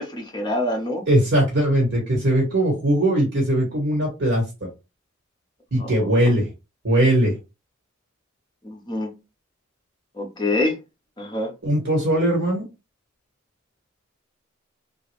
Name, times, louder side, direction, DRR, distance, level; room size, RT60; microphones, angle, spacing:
voice 1, 0.0-1.0 5.8-5.9 8.6-9.1 10.1-10.8 11.2-11.5, left 2 dB, 20° left, 0.8 m, -26 dB
voice 2, 1.1-4.7 5.7-6.5 6.8-7.3 11.6-12.6, right 1 dB, 55° right, 1.4 m, -20 dB
3.1 x 2.4 x 3.2 m
head